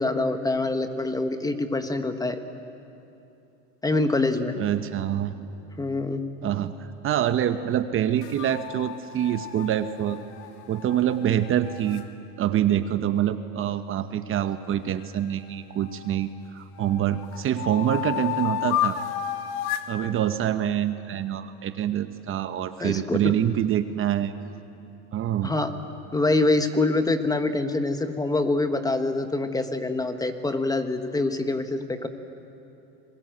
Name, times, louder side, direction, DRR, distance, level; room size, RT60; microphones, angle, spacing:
voice 1, 0.0-2.4 3.8-4.5 5.8-6.2 22.8-23.3 25.4-25.7 26.1-32.1, left 2 dB, 10° left, 8 dB, 1.4 m, -25 dB
voice 2, 4.6-5.3 6.4-6.7 7.0-10.2 10.7-12.0 12.4-19.0 19.9-24.3 25.1-25.5, right 10 dB, 40° right, 10 dB, 1.0 m, -25 dB
sound 1, 8.2-12.1 15.0-16.2 16.7-19.9, left 12 dB, 60° left, 2.0 m, -32 dB
28.0 x 21.5 x 8.0 m, 2.8 s
supercardioid pair, 120°, 35 cm